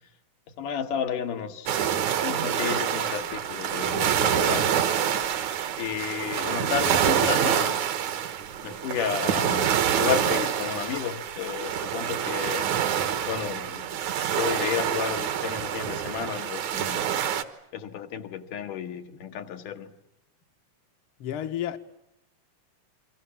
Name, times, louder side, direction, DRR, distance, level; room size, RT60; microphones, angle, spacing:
voice 1, 0.6-4.7 5.8-7.8 8.6-12.7 13.3-13.9 14.2-17.1 17.7-19.9, left 8 dB, 75° left, 3.0 m, -32 dB
sound 1, 1.7-17.4, right 9 dB, 65° right, 2.5 m, -26 dB
voice 2, 21.2-21.8, left 11 dB, 55° left, 1.7 m, -30 dB
29.5 x 25.0 x 7.3 m
omnidirectional pair, 3.8 m